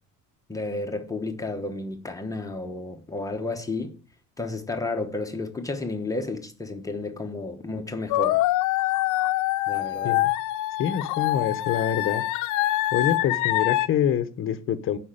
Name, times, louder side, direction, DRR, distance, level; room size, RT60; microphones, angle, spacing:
voice 1, 0.5-3.9 4.4-8.4 9.7-10.2, left 2 dB, 10° left, 1.0 m, -32 dB
sound 1, 8.1-13.9, left 16 dB, 75° left, 0.7 m, -25 dB
voice 2, 10.8-12.2 12.9-15.0, left 9 dB, 40° left, 0.9 m, -26 dB
11.0 x 6.0 x 8.9 m
cardioid pair, 180°, 31 cm